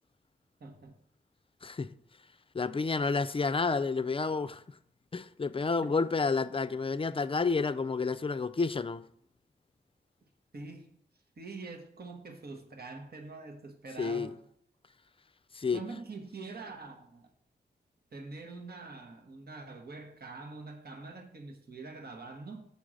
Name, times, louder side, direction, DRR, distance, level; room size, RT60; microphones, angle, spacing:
voice 1, 0.6-1.0 10.5-10.9 11.4-14.4 15.7-17.3 18.1-22.6, right 3 dB, 60° right, 1.2 m, -44 dB
voice 2, 1.6-1.9 2.5-4.6 5.1-9.1 14.0-14.3 15.5-15.8, left 4 dB, 30° left, 0.4 m, -30 dB
7.0 x 3.7 x 6.2 m
cardioid pair, 45°, 18 cm